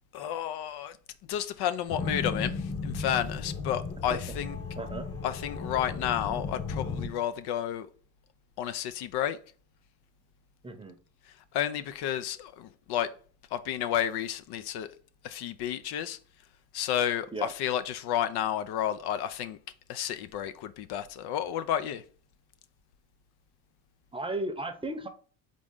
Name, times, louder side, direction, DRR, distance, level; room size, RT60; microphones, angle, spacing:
voice 1, 0.1-1.0 1.3-4.6 5.2-7.9 8.6-9.4 11.3-13.1 13.5-14.9 15.2-16.2 16.7-19.6 19.9-22.0, left 10 dB, 70° left, 0.6 m, -31 dB
sound 1, 1.9-7.1, left 4 dB, 35° left, 1.1 m, -35 dB
voice 2, 4.8-5.1 10.6-11.0 17.3-17.5 24.1-25.1, right 2 dB, 15° right, 0.7 m, -35 dB
3.8 x 3.7 x 3.7 m
supercardioid pair, 85°, 40 cm